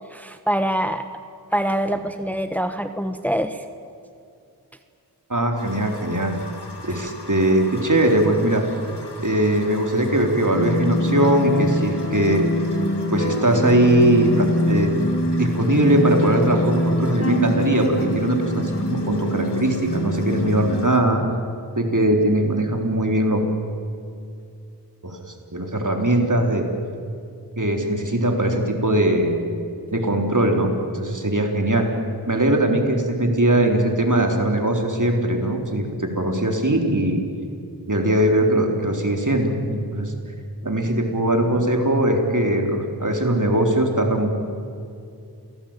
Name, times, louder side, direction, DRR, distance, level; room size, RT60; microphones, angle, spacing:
voice 1, 0.1-1.0 1.5-3.6, equal, 5° left, 8 dB, 1.1 m, -24 dB
voice 2, 5.3-6.4 6.8-8.7 9.2-12.4 13.1-14.9 15.4-21.2 21.8-23.4 25.0-25.2 25.5-26.7 27.6-29.3 29.9-31.9 32.3-37.2 37.9-40.1 40.6-44.3, right 1 dB, 50° right, 3 dB, 3.9 m, -20 dB
sound 1, 5.6-21.0, left 3 dB, 85° left, 2.9 m, -42 dB
sound 2, 10.5-20.9, left 1 dB, 35° left, 2.0 m, -24 dB
28.0 x 18.5 x 9.0 m, 2.5 s
wide cardioid pair, 40°, 40 cm